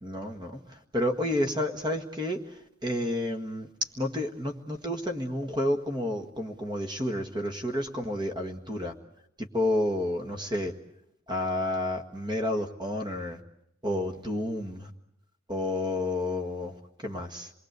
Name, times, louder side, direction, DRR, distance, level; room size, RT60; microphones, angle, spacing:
voice 1, 0.0-8.9 9.4-10.7 11.3-13.4 13.8-14.9 15.5-17.5, left 1 dB, 20° right, 5 dB, 1.7 m, -30 dB
27.0 x 21.0 x 8.1 m, 0.79 s
head